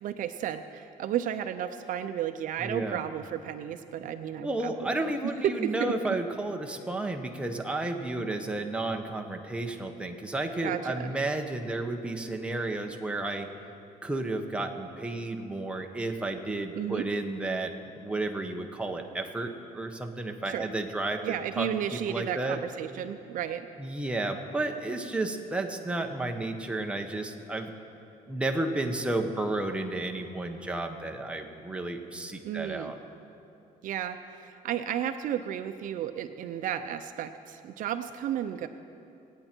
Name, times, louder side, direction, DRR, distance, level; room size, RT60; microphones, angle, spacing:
voice 1, 0.0-5.0 5.4-5.9 10.6-11.1 16.8-17.0 20.5-20.7 21.2-23.7 32.4-32.9 33.8-38.7, right 10 dB, 65° right, 9 dB, 0.6 m, -33 dB
voice 2, 2.6-3.0 4.4-13.5 14.0-21.7 22.1-22.6 23.8-27.7 28.3-33.0, right 2 dB, 5° right, 3 dB, 1.1 m, -32 dB
25.5 x 8.9 x 4.5 m, 2.7 s
cardioid pair, 125°, 15 cm